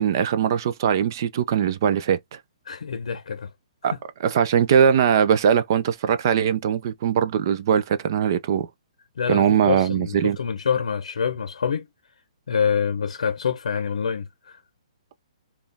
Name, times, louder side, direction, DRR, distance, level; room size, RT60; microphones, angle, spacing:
voice 1, 0.0-2.4 3.8-3.9 4.2-8.7 9.3-10.4, right 8 dB, 35° right, 0.4 m, -21 dB
voice 2, 2.7-3.5 3.8-4.0 9.2-11.9 12.5-14.6, left 6 dB, 80° left, 0.6 m, -26 dB
4.1 x 2.3 x 3.3 m
hypercardioid pair, 170°, 3 cm